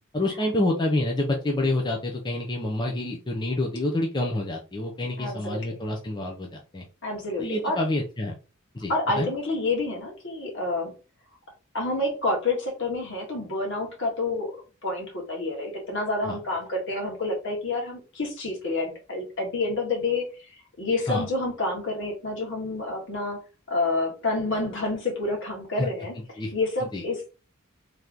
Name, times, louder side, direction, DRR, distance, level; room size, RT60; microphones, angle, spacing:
voice 1, 0.1-6.8 7.4-8.4 8.7-9.3 16.3-16.4 21.1-21.2 25.8-25.9 26.4-26.5 26.9-27.0, left 1 dB, 20° left, 0 dB, 0.6 m, -27 dB
voice 2, 5.2-5.8 7.0-7.8 8.9-10.9 11.7-14.5 14.8-20.3 20.8-23.4 23.7-26.1 26.5-27.3, left 2 dB, 60° left, 0 dB, 1.7 m, -28 dB
3.3 x 3.0 x 3.8 m, 0.33 s
head